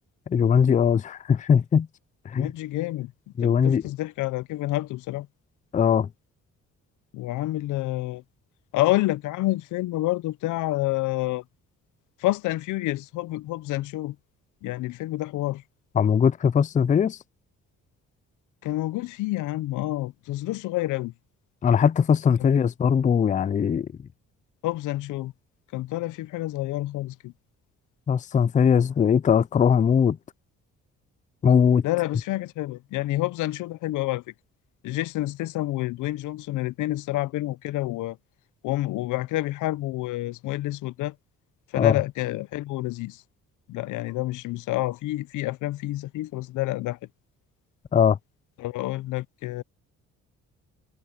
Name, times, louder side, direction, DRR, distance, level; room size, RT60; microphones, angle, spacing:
voice 1, 0.3-1.9 2.3-2.5 3.4-3.8 5.7-6.1 16.0-17.2 21.6-23.9 28.1-30.2 31.4-31.8 41.7-42.0 47.9-48.2, left 7 dB, 25° left, 0.4 m, -20 dB
voice 2, 2.4-3.1 3.4-5.3 7.1-8.2 8.7-11.4 12.2-14.2 14.6-15.6 18.6-21.1 24.6-25.3 25.7-27.3 31.8-34.2 34.8-38.2 38.6-41.1 41.7-43.2 43.7-47.0 48.6-49.6, left 17 dB, 85° left, 0.6 m, -28 dB
cardioid pair, 90°, 30 cm